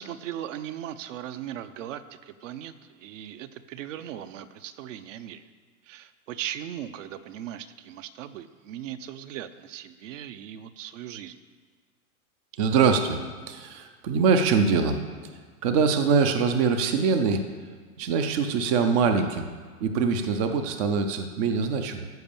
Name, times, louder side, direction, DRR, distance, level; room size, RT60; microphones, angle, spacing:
voice 1, 0.0-5.4 5.8-11.4, right 11 dB, 55° right, 11 dB, 0.7 m, -38 dB
voice 2, 12.6-13.2 13.5-15.0 15.6-17.4 18.0-19.5 19.8-22.1, right 5 dB, 25° right, 7 dB, 0.4 m, -23 dB
13.5 x 5.1 x 7.1 m, 1.5 s
supercardioid pair, 145°, 45 cm